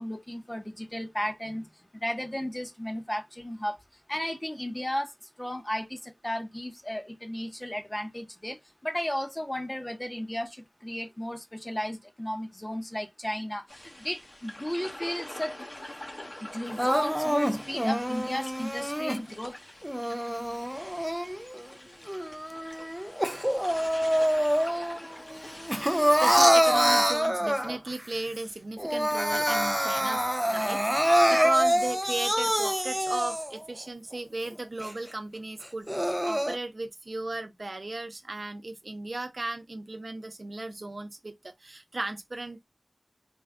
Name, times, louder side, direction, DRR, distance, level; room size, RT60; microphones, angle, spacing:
voice 1, 0.0-3.8 4.1-15.6 16.4-19.6, left 1 dB, 25° left, 0.8 m, -34 dB
sound 1, 13.7-26.4, left 1 dB, 60° left, 1.0 m, -45 dB
Crying sobbing, 16.8-19.2 19.8-21.6 22.1-25.0 25.3-28.0 28.4-28.5 28.8-33.6 34.1-34.2 34.8-34.9 35.6-36.6, equal, 5° right, 0.3 m, -26 dB
voice 2, 25.8-42.6, right 2 dB, 80° right, 0.6 m, -35 dB
3.4 x 2.2 x 3.5 m
wide cardioid pair, 40°, 0 cm